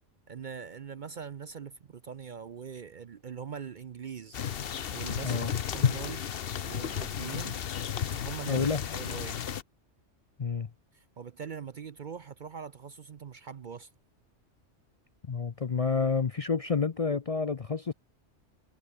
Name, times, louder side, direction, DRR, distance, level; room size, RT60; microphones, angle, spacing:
voice 1, 0.3-4.6 4.9-5.5 5.7-6.3 6.6-7.6 8.1-9.4 10.9-13.9, right 7 dB, 50° right, 0.7 m, -42 dB
sound 1, 4.3-9.6, left 8 dB, 55° left, 1.0 m, -33 dB
voice 2, 8.5-8.8 10.4-10.7 15.3-17.9, left 5 dB, 40° left, 0.6 m, -29 dB
omnidirectional pair, 1.3 m